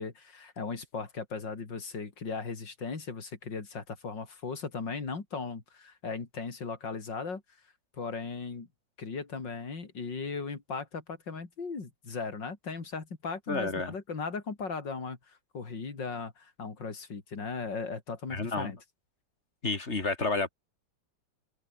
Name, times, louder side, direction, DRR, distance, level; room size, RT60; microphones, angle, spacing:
voice 1, 0.0-7.4 8.0-8.7 9.0-18.8, left 4 dB, 80° left, 4.1 m, -37 dB
voice 2, 13.5-13.9 18.3-18.7 19.6-20.5, left 3 dB, 35° left, 2.9 m, -30 dB
open air
omnidirectional pair, 1.9 m